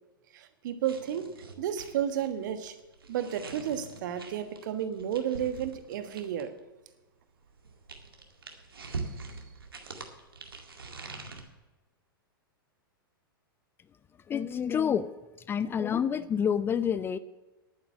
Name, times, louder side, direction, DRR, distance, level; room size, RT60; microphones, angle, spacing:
voice 1, 0.3-1.3 1.6-2.7 3.1-6.5 8.9-9.0, right 9 dB, 55° right, 10 dB, 1.4 m, -32 dB
sound 1, 0.8-6.6 7.4-11.4, right 4 dB, 75° right, 2.0 m, -44 dB
voice 2, 14.3-15.1 15.5-17.2, left 8 dB, 20° left, 16 dB, 0.4 m, -28 dB
11.0 x 9.4 x 7.3 m, 1.1 s
figure-of-eight pair, 100°, 12 cm